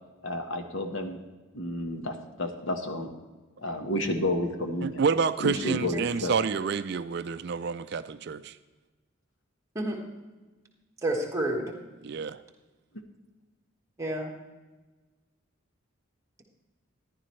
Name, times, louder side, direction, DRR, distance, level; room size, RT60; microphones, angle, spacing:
voice 1, 0.2-1.2 1.5-3.1 3.6-5.0 5.4-6.3, left 1 dB, 70° left, 6 dB, 1.2 m, -31 dB
voice 2, 4.8-8.6 12.0-12.4, right 5 dB, 55° right, 12 dB, 0.3 m, -28 dB
voice 3, 11.0-11.7 14.0-14.3, right 1 dB, 15° right, -1 dB, 1.5 m, -30 dB
14.0 x 11.0 x 3.2 m, 1.2 s
head